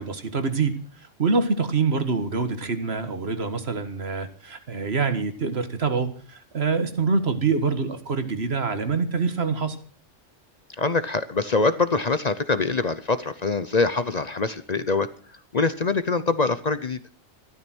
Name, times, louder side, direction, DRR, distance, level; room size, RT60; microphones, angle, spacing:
voice 1, 0.0-9.8, right 4 dB, 55° right, 1.9 m, -25 dB
voice 2, 10.8-15.1 15.5-17.0, left 3 dB, 40° left, 0.7 m, -24 dB
14.0 x 12.5 x 6.2 m
omnidirectional pair, 1.3 m